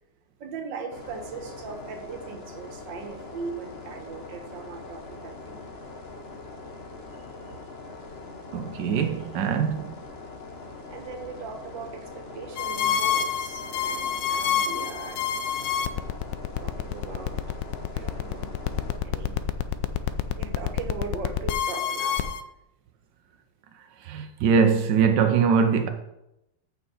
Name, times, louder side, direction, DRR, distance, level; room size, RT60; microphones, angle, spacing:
voice 1, 0.4-5.7 7.9-8.0 10.9-15.3 16.6-17.6 17.9-18.5 19.0-19.4 20.3-22.4, right 5 dB, 90° right, 1.9 m, -39 dB
sound 1, 0.9-19.0, left 3 dB, 40° left, 1.3 m, -42 dB
voice 2, 8.5-9.9 24.0-25.9, right 6 dB, 75° right, 1.3 m, -22 dB
sound 2, 12.6-22.4, left 9 dB, 85° left, 1.3 m, -27 dB
14.0 x 5.7 x 4.3 m
omnidirectional pair, 1.9 m